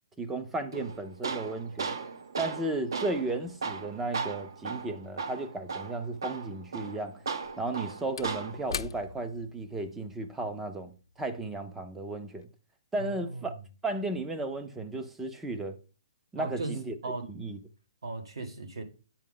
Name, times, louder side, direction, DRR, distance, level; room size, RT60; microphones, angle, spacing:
voice 1, 0.2-1.9 2.4-7.2 7.6-10.9 11.2-12.5 12.9-13.5 13.8-15.8 16.3-16.9 17.3-17.6, right 2 dB, 5° right, 0.4 m, -34 dB
Tools, 0.7-8.7, right 5 dB, 60° right, 0.6 m, -37 dB
Slam / Wood, 7.3-12.0 12.3-12.4, left 6 dB, 70° left, 0.5 m, -43 dB
voice 2, 13.0-13.4 16.4-16.7 17.0-17.3 18.0-18.8, right 3 dB, 80° right, 1.7 m, -37 dB
8.4 x 4.9 x 3.8 m
hypercardioid pair, 175°, 3 cm